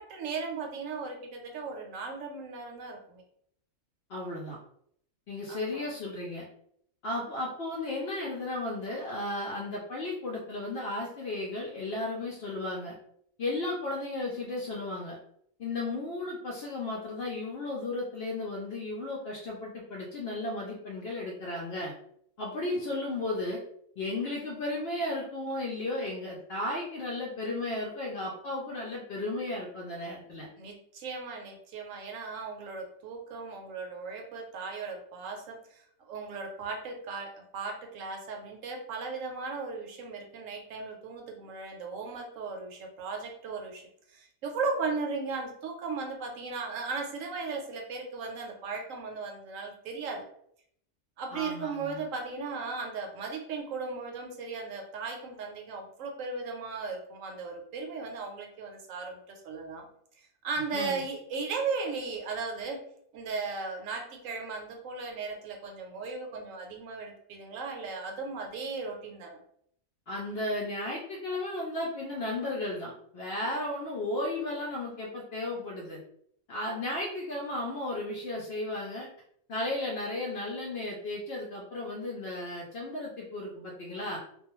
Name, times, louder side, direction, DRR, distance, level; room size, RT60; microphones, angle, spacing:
voice 1, 0.0-3.2 5.5-5.8 30.6-43.8 44.1-50.2 51.2-59.9 60.1-62.8 63.1-69.4, right 4 dB, 75° right, 2 dB, 0.9 m, -37 dB
voice 2, 4.1-4.6 5.3-6.4 7.0-12.9 13.4-15.2 15.6-21.9 22.4-23.6 24.0-30.5 51.3-52.0 60.7-61.0 70.1-76.0 76.5-79.1 79.5-84.2, left 2 dB, 60° left, -3 dB, 0.6 m, -34 dB
2.3 x 2.2 x 2.9 m, 0.68 s
omnidirectional pair, 1.4 m